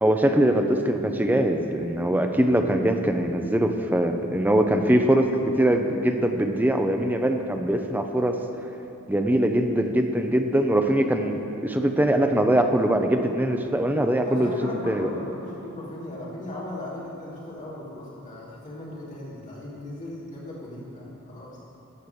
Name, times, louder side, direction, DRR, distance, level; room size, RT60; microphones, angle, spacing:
voice 1, 0.0-8.4 9.1-14.5 14.9-15.1, right 1 dB, 10° right, 5 dB, 0.6 m, -22 dB
voice 2, 14.2-21.5, left 1 dB, 35° left, -7 dB, 2.9 m, -37 dB
13.5 x 4.7 x 8.6 m, 2.9 s
head